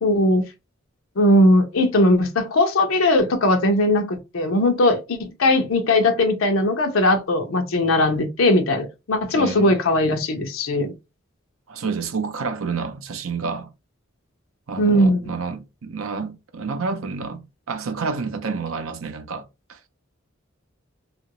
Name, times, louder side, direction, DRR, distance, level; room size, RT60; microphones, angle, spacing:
voice 1, 0.0-0.5 1.2-10.9 14.8-15.2, left 1 dB, 75° left, 0.6 m, -19 dB
voice 2, 9.3-9.8 11.7-13.7 14.7-17.4 17.7-19.8, right 4 dB, 80° right, 0.6 m, -29 dB
2.8 x 2.4 x 2.9 m
head